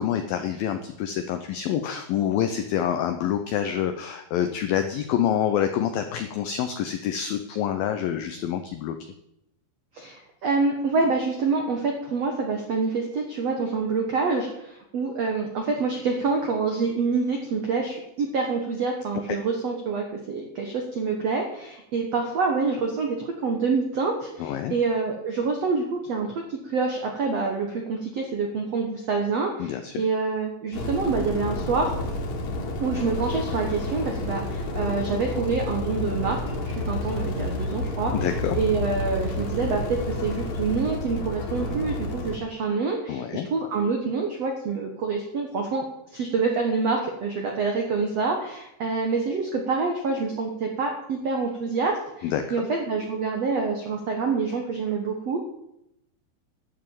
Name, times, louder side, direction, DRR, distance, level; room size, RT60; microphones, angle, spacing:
voice 1, 0.0-9.0 24.4-24.8 29.6-30.0 38.1-38.6 43.1-43.5 52.2-52.7, left 9 dB, 85° left, 8 dB, 2.0 m, -27 dB
voice 2, 9.9-31.9 32.8-38.1 38.5-45.8 46.1-55.4, right 4 dB, 75° right, 2 dB, 1.5 m, -27 dB
sound 1, 30.7-42.4, left 1 dB, 50° left, 2.8 m, -30 dB
12.0 x 6.9 x 8.8 m, 0.82 s
omnidirectional pair, 5.2 m